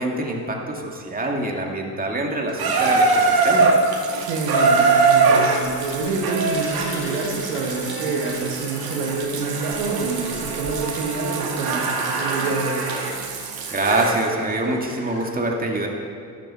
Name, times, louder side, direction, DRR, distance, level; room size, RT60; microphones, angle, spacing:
voice 1, 0.0-3.7 13.7-15.9, right 2 dB, 20° right, 0 dB, 2.3 m, -25 dB
Water tap faucet / Bathtub (filling or washing), 2.6-14.2 15.2-15.3, right 4 dB, 50° right, 2.1 m, -22 dB
voice 2, 4.1-11.9 12.2-12.8, right 4 dB, 80° right, 1 dB, 2.1 m, -27 dB
sound 1, 4.9-5.2 5.5-10.7, left 3 dB, 25° left, 1.9 m, -41 dB
13.5 x 12.0 x 4.4 m, 2.2 s
hypercardioid pair, 65°, 45 cm